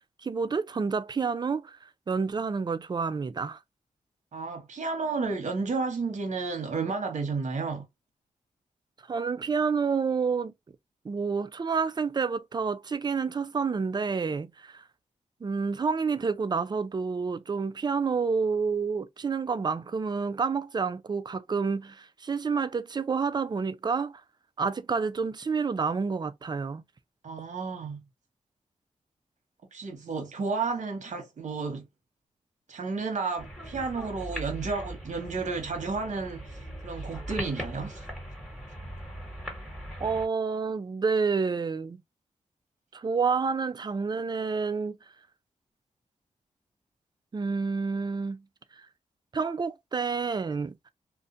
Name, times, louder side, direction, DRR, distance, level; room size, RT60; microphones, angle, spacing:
voice 1, 0.2-3.6 9.1-10.5 11.0-14.8 15.4-24.2 24.6-26.8 40.0-42.0 42.9-45.0 47.3-48.4 48.8-48.9 49.3-50.9, right 5 dB, 35° right, 0.4 m, -29 dB
voice 2, 4.3-7.9 27.2-28.0 29.7-31.9 32.7-38.0, right 4 dB, 65° right, 1.1 m, -32 dB
sound 1, 33.4-40.3, equal, ahead, 1.4 m, -40 dB
2.5 x 2.2 x 2.5 m
cardioid pair, 65°, 13 cm